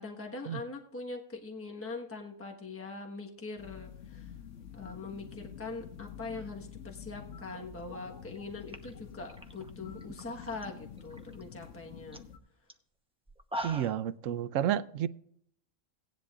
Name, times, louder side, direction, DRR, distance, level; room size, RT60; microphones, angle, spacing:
voice 1, 0.0-4.3 4.7-12.2, left 3 dB, 10° left, 1.2 m, -42 dB
sound 1, 3.6-12.4, left 8 dB, 65° left, 1.2 m, -48 dB
sound 2, 8.3-8.4 8.7-10.6 11.0-11.4 11.8-11.9 12.1-12.3 12.7-12.8 13.3-14.1, equal, 5° right, 0.6 m, -42 dB
voice 2, 13.6-15.1, right 10 dB, 75° right, 0.9 m, -31 dB
17.5 x 10.5 x 2.4 m
omnidirectional pair, 1.4 m